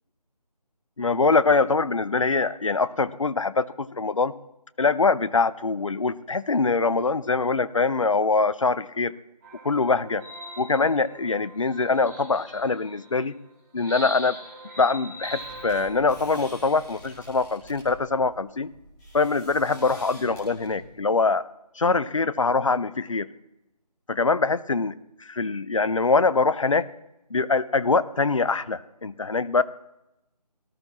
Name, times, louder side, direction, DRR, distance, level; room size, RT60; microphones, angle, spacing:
voice 1, 1.0-4.3 4.8-9.1 9.6-10.2 10.6-13.3 13.7-14.4 14.8-18.7 19.1-21.4 21.8-23.3 24.1-24.9 25.2-26.9 27.3-29.6, left 4 dB, 50° left, 16 dB, 0.6 m, -23 dB
sound 1, 9.4-13.2 13.8-15.9, right 1 dB, 25° right, 4.2 m, -41 dB
sound 2, 15.1-21.2, equal, 5° left, 1.6 m, -47 dB
18.0 x 12.5 x 2.9 m, 0.88 s
figure-of-eight pair, 160°, 21 cm